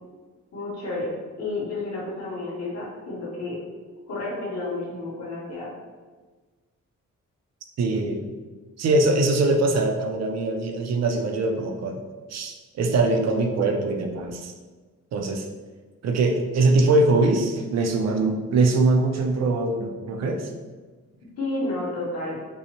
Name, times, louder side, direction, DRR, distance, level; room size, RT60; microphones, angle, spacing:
voice 1, 0.5-1.1 1.4-3.6 4.1-5.7 21.4-22.4, left 2 dB, 60° left, -6 dB, 1.4 m, -31 dB
voice 2, 7.8-8.3 8.8-12.0 12.3-14.5 15.1-15.4 16.0-20.5, right 2 dB, 65° right, 3 dB, 0.5 m, -22 dB
5.4 x 2.0 x 2.9 m, 1.4 s
wide cardioid pair, 175°, 29 cm